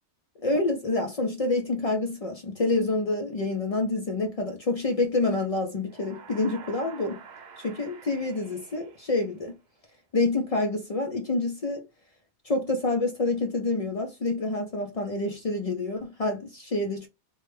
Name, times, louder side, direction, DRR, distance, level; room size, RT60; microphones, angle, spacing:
voice 1, 0.4-7.2 7.6-9.6 10.1-11.8 12.4-17.1, left 2 dB, 60° left, 0.4 m, -27 dB
Moaning Ghost, 5.8-9.7, right 6 dB, 50° right, 0.6 m, -48 dB
3.0 x 2.1 x 3.2 m
omnidirectional pair, 1.2 m